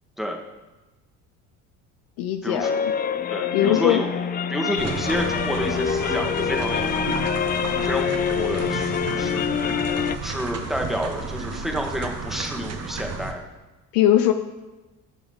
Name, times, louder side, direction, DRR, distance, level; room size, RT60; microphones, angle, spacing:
voice 1, 2.2-2.9 3.5-4.0 13.9-14.3, left 12 dB, 55° left, 8 dB, 0.7 m, -20 dB
sound 1, 2.6-10.2, left 7 dB, 20° left, 0.5 m, -25 dB
voice 2, 3.3-4.1 4.5-7.0 7.8-9.4 10.2-13.4, equal, ahead, 2 dB, 1.8 m, -29 dB
sound 2, 4.8-13.3, right 5 dB, 35° right, 1.3 m, -32 dB
20.5 x 7.0 x 3.5 m, 1.1 s
figure-of-eight pair, 60°, 43 cm